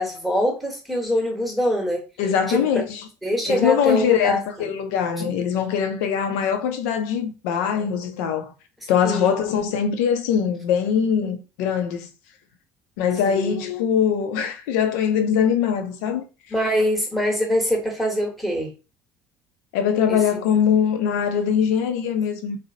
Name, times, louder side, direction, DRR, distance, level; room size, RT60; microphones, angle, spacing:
voice 1, 0.0-2.0 2.5-2.7 3.2-4.8 9.0-9.4 13.3-13.6 16.5-18.7 20.1-20.2, equal, ahead, 1.1 m, -24 dB
voice 2, 2.2-3.1 3.5-8.5 8.9-12.1 13.0-16.3 19.7-22.6, left 7 dB, 80° left, 0.5 m, -22 dB
2.4 x 2.0 x 2.7 m
hypercardioid pair, 70°, 8 cm